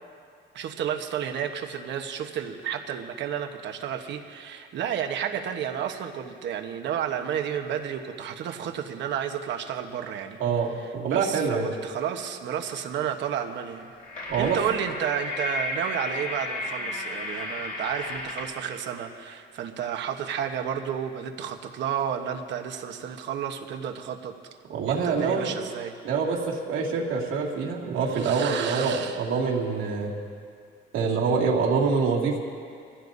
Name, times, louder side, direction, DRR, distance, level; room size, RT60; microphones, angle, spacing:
voice 1, 0.5-10.4 11.1-13.9 14.4-24.3 24.9-25.9 28.1-29.2, right 8 dB, 65° right, 5 dB, 1.1 m, -31 dB
voice 2, 10.4-11.7 14.3-14.6 24.7-25.6 26.0-30.1 30.9-32.4, right 5 dB, 90° right, -2 dB, 2.3 m, -25 dB
sound 1, 13.7-18.6, left 2 dB, 45° left, 3.0 m, -33 dB
24.5 x 16.0 x 2.7 m, 2.3 s
cardioid pair, 170°, 20 cm